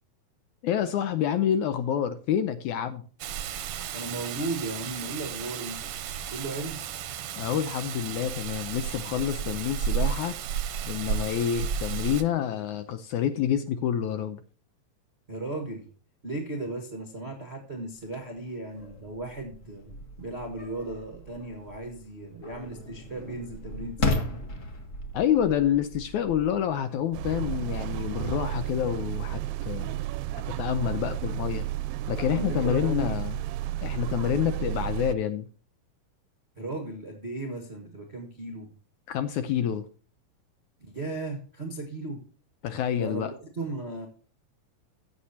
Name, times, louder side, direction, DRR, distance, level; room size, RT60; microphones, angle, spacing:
voice 1, 0.6-3.1 7.4-10.4 10.9-14.4 25.1-29.9 30.4-31.6 32.1-33.4 33.8-35.5 39.1-39.9 42.6-43.3, left 9 dB, 75° left, 10 dB, 1.8 m, -28 dB
Rain, 3.2-12.2, right 9 dB, 70° right, 1.7 m, -33 dB
voice 2, 3.9-5.9 6.3-6.8 15.3-15.9 16.2-24.3 32.3-33.2 36.6-38.7 40.8-42.2 43.0-44.1, right 2 dB, 45° right, 4 dB, 0.8 m, -36 dB
sound 1, 18.0-28.9, left 2 dB, 55° left, 0.9 m, -37 dB
sound 2, 27.1-35.1, right 14 dB, 90° right, 2.3 m, -32 dB
14.5 x 8.2 x 2.8 m, 0.41 s
omnidirectional pair, 4.0 m